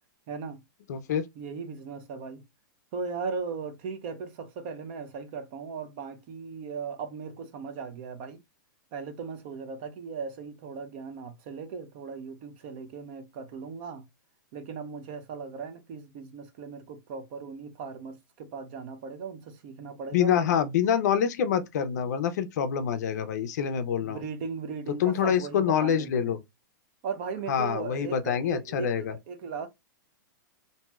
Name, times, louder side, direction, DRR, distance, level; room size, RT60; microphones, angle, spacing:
voice 1, 0.3-0.6 1.4-2.4 2.9-8.4 8.9-14.1 14.5-20.5 24.0-26.3 27.0-29.7, right 5 dB, 30° right, 0.4 m, -38 dB
voice 2, 0.9-1.2 20.1-24.2 25.0-26.4 27.5-29.1, left 8 dB, 50° left, 0.5 m, -26 dB
2.6 x 2.3 x 3.0 m
supercardioid pair, 170°, 11 cm